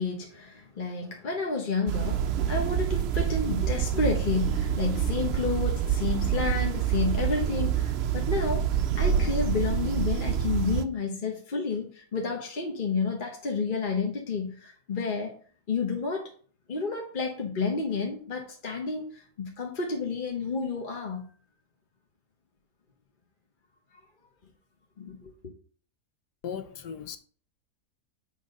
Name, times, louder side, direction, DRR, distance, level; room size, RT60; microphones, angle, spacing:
voice 1, 0.0-15.3 15.7-16.3 16.7-21.3 25.0-25.5, left 4 dB, 35° left, 1.1 m, -30 dB
sound 1, 1.9-10.8, right 9 dB, 90° right, 0.5 m, -27 dB
voice 2, 26.4-27.2, left 7 dB, 80° left, 1.4 m, -37 dB
8.6 x 3.8 x 5.3 m
omnidirectional pair, 1.8 m